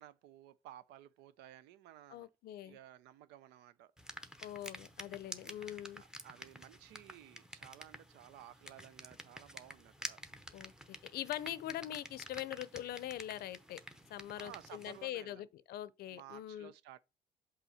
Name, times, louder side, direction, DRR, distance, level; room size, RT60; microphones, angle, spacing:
voice 1, 0.0-2.3 2.6-3.9 5.2-10.2 14.4-15.5 16.1-17.0, right 12 dB, 90° right, 0.5 m, -56 dB
voice 2, 2.1-2.8 4.4-6.0 10.5-13.8 14.1-16.7, left 12 dB, 65° left, 0.5 m, -43 dB
sound 1, 4.0-15.1, equal, 5° right, 0.7 m, -50 dB
5.6 x 4.0 x 4.2 m
cardioid pair, 110°, 17 cm